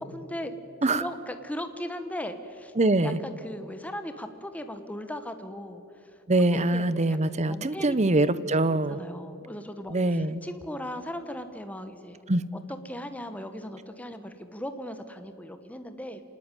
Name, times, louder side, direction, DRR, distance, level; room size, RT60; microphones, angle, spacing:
voice 1, 0.1-0.5 0.8-2.7 3.0-6.2 6.5-7.0 7.5-8.0 8.7-12.2 12.5-16.2, left 1 dB, 5° left, 8 dB, 1.2 m, -38 dB
voice 2, 2.8-3.2 6.3-9.0 9.9-10.4 12.3-12.4, right 2 dB, 30° right, 15 dB, 0.8 m, -23 dB
27.0 x 19.5 x 9.1 m, 2.6 s
head